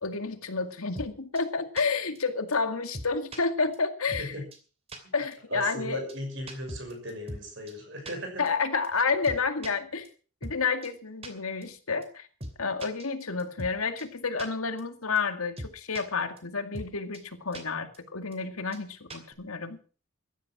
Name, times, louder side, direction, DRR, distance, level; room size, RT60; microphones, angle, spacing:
voice 1, 0.0-4.4 5.1-6.0 8.4-10.1 10.4-12.3 12.6-19.8, left 4 dB, 90° left, 8 dB, 2.1 m, -30 dB
sound 1, 1.0-1.1 1.4-1.5 1.8-1.9 2.2-2.3 2.5-2.6 2.9-3.4 3.7-3.8 4.1-4.3 4.5-4.6 4.9-5.0 5.3-5.4 5.7-5.8 6.1-6.2 6.5-7.4 7.7-7.8 8.1-8.2 8.5-8.6 8.8-8.9 9.2-9.7 10.0-10.1 10.4-10.6 10.8-10.9 11.2-11.3 11.6-11.7 12.0-12.1 12.4-12.5 12.8-13.7 14.0-14.1 14.4-14.5 14.8-14.9 15.2-15.3 15.6-16.0 16.4-16.5 16.7-16.9 17.1-17.2 17.5-17.6 17.9-18.0 18.3-18.4 18.7-18.8 19.1-19.3, right 1 dB, 30° right, 2.8 m, -39 dB
voice 2, 5.5-8.4, equal, 55° right, 4 dB, 6.4 m, -37 dB
15.0 x 11.5 x 6.0 m, 0.39 s
head